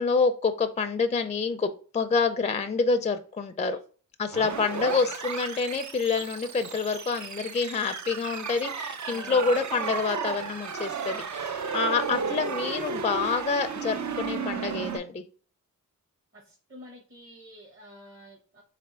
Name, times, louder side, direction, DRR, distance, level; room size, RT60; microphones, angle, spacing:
voice 1, 0.0-3.8 4.2-15.2, left 4 dB, 20° left, 8 dB, 0.4 m, -27 dB
voice 2, 4.3-5.1 9.0-9.6 11.9-12.5 16.3-18.6, equal, 40° right, -1 dB, 1.2 m, -49 dB
sound 1, 4.3-15.0, right 5 dB, 55° right, 0.6 m, -33 dB
3.6 x 3.4 x 4.3 m, 0.40 s
wide cardioid pair, 90°, 33 cm